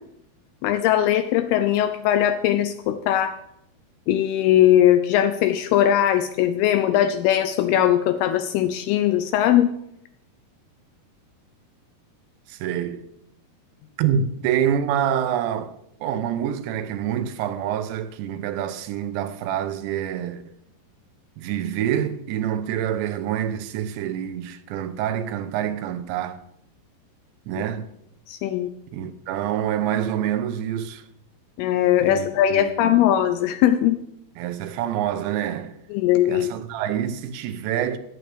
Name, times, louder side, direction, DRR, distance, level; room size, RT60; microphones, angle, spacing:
voice 1, 0.6-3.4 4.1-9.7 28.3-28.7 31.6-34.0 35.9-36.5, left 11 dB, 85° left, 2.3 m, -20 dB
voice 2, 12.5-13.1 14.0-15.7 16.0-20.4 21.4-26.4 27.5-27.9 28.9-31.0 32.0-33.0 34.4-35.8 36.3-38.0, right 9 dB, 85° right, 3.0 m, -26 dB
15.0 x 11.0 x 3.4 m
omnidirectional pair, 5.0 m